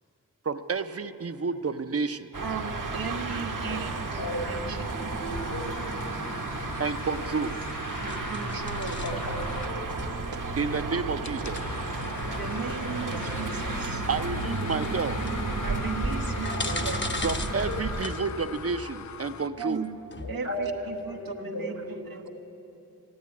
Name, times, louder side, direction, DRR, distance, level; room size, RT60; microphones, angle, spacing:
voice 1, 0.4-2.3 3.9-4.0 6.8-7.6 8.5-8.6 10.6-12.1 12.6-12.7 13.5-13.7 14.1-15.3 17.2-19.8 20.4-20.5, right 4 dB, 45° right, 9 dB, 0.6 m, -31 dB
sound 1, 2.3-18.0, right 3 dB, 65° right, 1.1 m, -33 dB
voice 2, 2.4-4.8 8.0-9.0 12.3-14.0 15.6-17.0 19.6-19.9 20.3-22.3, right 5 dB, 85° right, 3 dB, 1.1 m, -37 dB
voice 3, 4.1-4.5 4.8-6.0 9.0-9.8 12.8-13.6 13.8-14.0 16.5-17.8 20.2-22.3, equal, 80° left, 0 dB, 3.2 m, -37 dB
sound 2, 5.3-19.5, left 8 dB, 55° left, 0.5 m, -41 dB
sound 3, 5.3-21.4, left 2 dB, 35° left, 0.8 m, -42 dB
14.0 x 10.5 x 9.4 m, 3.0 s
cardioid pair, 45°, 34 cm